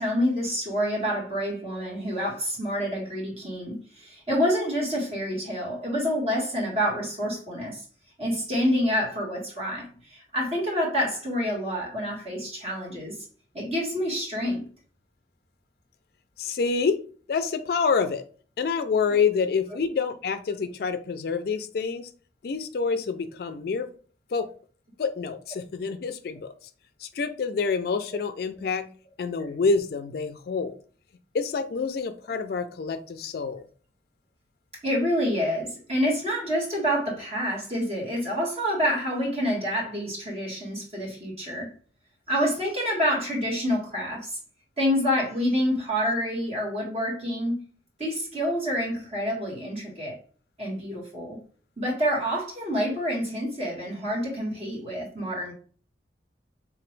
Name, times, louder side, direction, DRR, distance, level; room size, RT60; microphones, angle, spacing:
voice 1, 0.0-7.8 8.2-13.2 13.5-14.6 34.8-41.7 42.3-44.4 44.8-47.5 48.0-50.2 50.6-51.4 51.8-55.5, equal, 35° right, -3 dB, 1.7 m, -27 dB
voice 2, 16.4-17.0 17.3-18.2 18.6-22.1 22.4-23.9 24.3-24.5 25.0-26.7 27.0-28.9 29.2-30.7 31.3-33.6, left 5 dB, 55° left, 10 dB, 0.3 m, -27 dB
3.8 x 2.9 x 3.2 m, 0.42 s
head